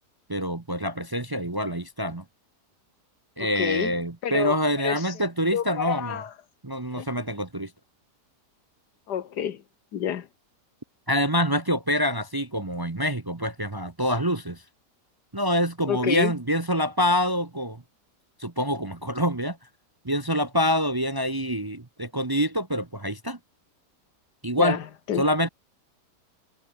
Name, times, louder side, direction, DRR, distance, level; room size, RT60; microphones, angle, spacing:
voice 1, 0.3-2.2 3.4-6.2 6.6-7.7 11.1-14.6 15.3-17.8 18.4-19.6 20.0-23.4 24.4-24.8 25.2-25.5, equal, 20° right, 0.7 m, -26 dB
voice 2, 3.4-3.9 4.2-5.1 5.5-6.3 6.9-7.1 9.1-9.6 9.9-10.3 15.9-16.3 24.6-25.2, left 9 dB, 80° left, 1.8 m, -29 dB
omnidirectional pair, 1.8 m